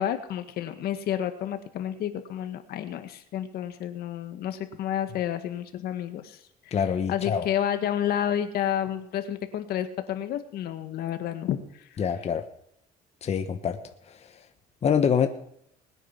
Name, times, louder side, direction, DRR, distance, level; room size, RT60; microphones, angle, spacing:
voice 1, 0.0-6.4 6.7-6.8 7.1-11.9, left 10 dB, 70° left, 8 dB, 1.7 m, -30 dB
voice 2, 6.7-7.5 12.0-12.4 13.2-13.8 14.1-14.2 14.8-15.3, left 7 dB, 40° left, 6 dB, 1.3 m, -25 dB
20.5 x 9.1 x 5.8 m, 0.70 s
cardioid pair, 105°, 17 cm